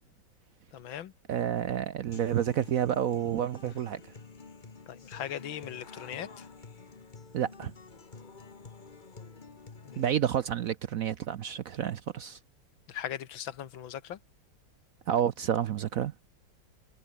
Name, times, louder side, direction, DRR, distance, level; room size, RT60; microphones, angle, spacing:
voice 1, 0.7-1.1 4.9-6.5 9.9-10.1 12.9-14.2, left 10 dB, 90° left, 2.0 m, -39 dB
voice 2, 1.3-4.0 7.3-7.7 10.0-12.4 15.1-16.1, right 10 dB, 65° right, 0.9 m, -29 dB
Human voice / Acoustic guitar, 2.1-10.1, left 4 dB, 30° left, 1.4 m, -49 dB
omnidirectional pair, 2.1 m